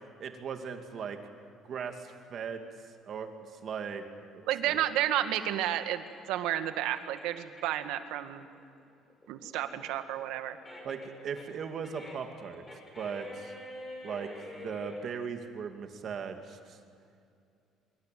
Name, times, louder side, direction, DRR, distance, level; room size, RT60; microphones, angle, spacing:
voice 1, 0.2-1.2 1.6-2.6 3.0-4.8 10.8-12.6 13.0-13.5 14.0-16.8, right 6 dB, 40° right, 6 dB, 2.4 m, -38 dB
sound 1, 4.4-7.9 8.3-15.0, left 1 dB, 10° left, 5.3 m, -47 dB
voice 2, 4.5-8.5 9.3-10.6, right 12 dB, 80° right, 9 dB, 1.9 m, -31 dB
25.5 x 23.5 x 9.3 m, 2.5 s
cardioid pair, 170°, 0 cm